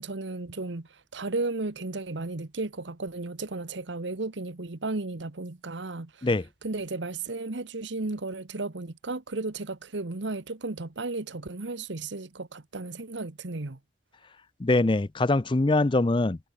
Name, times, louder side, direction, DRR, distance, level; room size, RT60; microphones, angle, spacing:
voice 1, 0.0-6.3 6.6-13.8, right 3 dB, 75° right, 1.2 m, -34 dB
voice 2, 14.6-16.4, left 2 dB, 25° left, 0.5 m, -23 dB
head